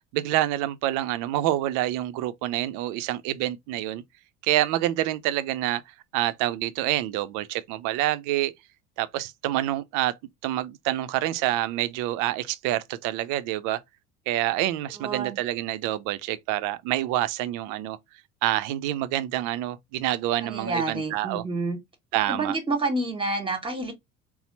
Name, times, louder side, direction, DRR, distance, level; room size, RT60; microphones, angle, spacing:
voice 1, 0.1-4.0 4.4-5.8 6.1-8.5 9.0-10.1 10.4-13.8 14.3-18.0 18.4-21.4 22.1-22.6, right 14 dB, 55° right, 0.5 m, -27 dB
voice 2, 14.9-15.4 20.4-21.8 22.3-23.9, right 2 dB, 15° right, 1.4 m, -28 dB
4.1 x 2.1 x 4.0 m
figure-of-eight pair, 60°, 39 cm